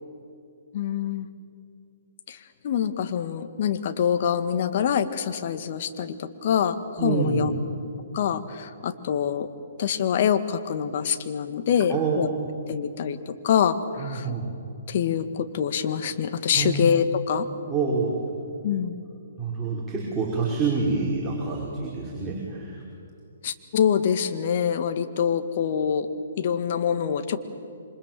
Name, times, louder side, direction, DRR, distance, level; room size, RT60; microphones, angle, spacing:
voice 1, 0.7-1.3 2.3-2.4 2.6-7.5 8.1-9.5 9.8-12.3 12.7-14.4 14.9-17.5 18.6-19.0 23.4-26.1 26.4-27.4, left 8 dB, 45° left, 9 dB, 1.9 m, -25 dB
voice 2, 7.0-7.5 11.9-12.2 14.0-14.4 16.6-16.9 17.6-18.2 19.4-22.8, right 4 dB, 10° right, -5 dB, 5.3 m, -27 dB
28.0 x 25.5 x 7.7 m, 2.5 s
figure-of-eight pair, 130°, 0 cm